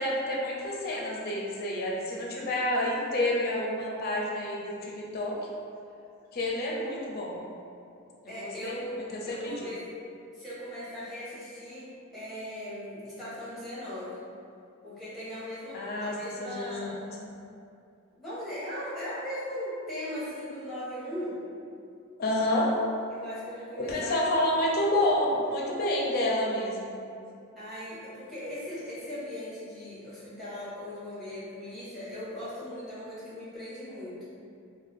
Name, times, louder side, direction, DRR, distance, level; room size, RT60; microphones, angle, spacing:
voice 1, 0.0-5.4 6.3-7.4 8.2-9.7 15.7-16.9 17.2-17.3 22.2-22.7 23.8-27.0, left 1 dB, 45° left, -3 dB, 0.5 m, -29 dB
voice 2, 8.3-9.8 10.3-14.2 14.8-17.1 18.1-21.4 23.1-24.2 27.5-34.2, left 1 dB, ahead, -13 dB, 1.2 m, -39 dB
2.6 x 2.1 x 3.4 m, 2.5 s
head